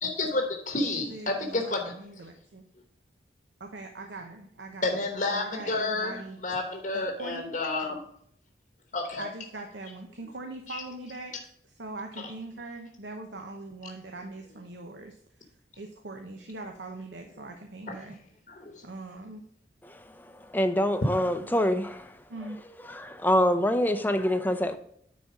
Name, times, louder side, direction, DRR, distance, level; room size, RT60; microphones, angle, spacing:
voice 1, 0.0-1.8 4.8-8.0 8.9-9.2 10.7-10.8 18.5-18.8, left 2 dB, 45° left, 1.0 m, -30 dB
voice 2, 0.9-2.6 3.6-5.0 5.3-6.4 6.9-7.5 9.2-11.3 11.6-15.1 15.8-18.2 18.8-19.4 22.3-22.6, right 2 dB, 75° right, 1.0 m, -41 dB
voice 3, 20.5-22.1 22.9-24.8, left 1 dB, 10° left, 0.5 m, -25 dB
9.8 x 4.2 x 4.8 m
head